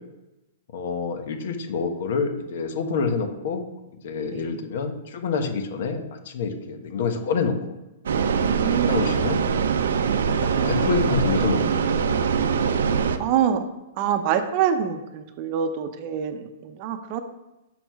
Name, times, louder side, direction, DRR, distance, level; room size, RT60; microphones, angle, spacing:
voice 1, 0.7-3.6 4.0-7.6 8.5-9.4 10.1-12.2, left 5 dB, 65° left, 6 dB, 1.0 m, -27 dB
sound 1, 8.1-13.2, right 6 dB, 80° right, 0.5 m, -23 dB
voice 2, 8.3-9.2 13.2-13.6 14.0-17.2, right 8 dB, 40° right, 8 dB, 0.7 m, -25 dB
5.9 x 4.4 x 4.6 m, 0.97 s
hypercardioid pair, 150°, 0 cm